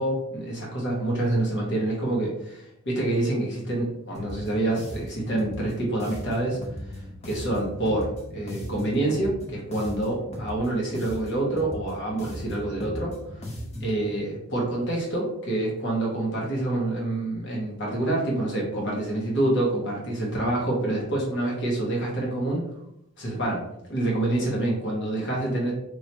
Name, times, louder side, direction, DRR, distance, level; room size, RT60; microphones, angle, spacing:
voice 1, 0.0-13.1 13.8-22.6 23.2-23.6 23.9-25.7, right 1 dB, 60° left, -3 dB, 1.4 m, -27 dB
sound 1, 4.1-14.0, equal, 30° left, 0.7 m, -38 dB
4.7 x 3.0 x 2.9 m, 0.78 s
head